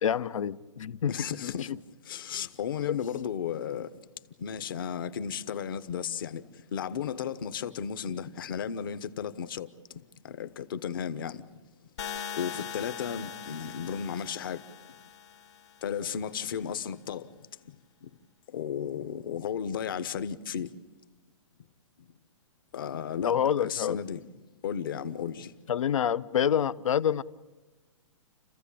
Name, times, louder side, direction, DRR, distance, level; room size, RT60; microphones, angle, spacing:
voice 1, 0.0-1.1 1.4-1.8 2.9-3.0 23.2-24.0 25.7-27.2, left 9 dB, 75° left, 0.8 m, -27 dB
voice 2, 1.1-1.7 2.1-3.9 4.4-6.4 6.7-9.7 10.2-11.4 12.3-14.6 15.8-17.3 18.5-20.7 22.7-24.2 24.6-25.5, left 8 dB, 40° left, 1.0 m, -34 dB
sound 1, 12.0-16.0, left 8 dB, 55° left, 2.3 m, -41 dB
29.5 x 15.0 x 8.5 m
hypercardioid pair, 175°, 17 cm